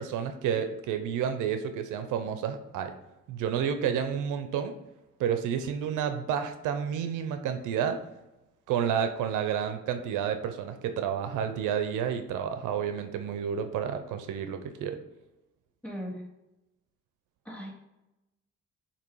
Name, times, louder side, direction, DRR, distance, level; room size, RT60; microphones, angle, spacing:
voice 1, 0.0-2.9 3.3-4.7 5.2-8.0 8.7-15.0, right 8 dB, 90° right, 8 dB, 0.7 m, -30 dB
voice 2, 15.8-16.2 17.4-17.7, equal, 5° left, -4 dB, 2.1 m, -38 dB
6.9 x 2.9 x 4.6 m, 0.95 s
cardioid pair, 90°, 30 cm